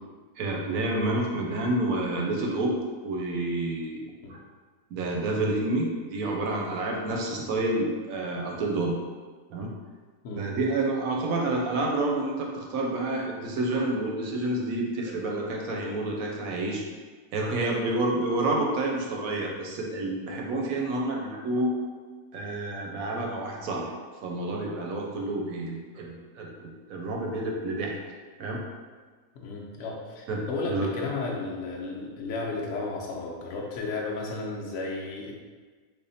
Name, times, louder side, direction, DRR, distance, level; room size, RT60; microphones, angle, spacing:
voice 1, 0.4-2.8 3.0-4.4 4.9-9.0 9.5-9.7 10.4-16.8 17.3-21.8 22.3-23.9 24.2-27.9 28.4-28.6 30.3-30.9, right 2 dB, 75° right, -1 dB, 1.0 m, -29 dB
voice 2, 29.3-35.4, left 3 dB, 60° left, -2 dB, 0.9 m, -33 dB
3.5 x 2.2 x 3.9 m, 1.5 s
omnidirectional pair, 1.6 m